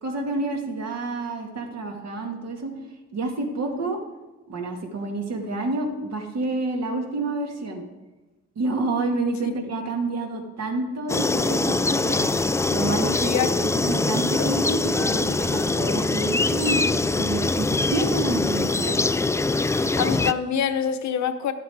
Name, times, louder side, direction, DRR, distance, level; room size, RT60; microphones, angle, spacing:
voice 1, 0.0-2.7 3.1-4.0 4.5-7.8 8.6-12.3 12.7-18.9, right 2 dB, 60° right, 2 dB, 2.2 m, -29 dB
sound 1, 11.1-20.3, left 3 dB, 10° left, 0.3 m, -23 dB
voice 2, 19.7-21.5, left 8 dB, 65° left, 8 dB, 1.0 m, -25 dB
11.5 x 8.2 x 4.8 m, 1.1 s
cardioid pair, 90°, 30 cm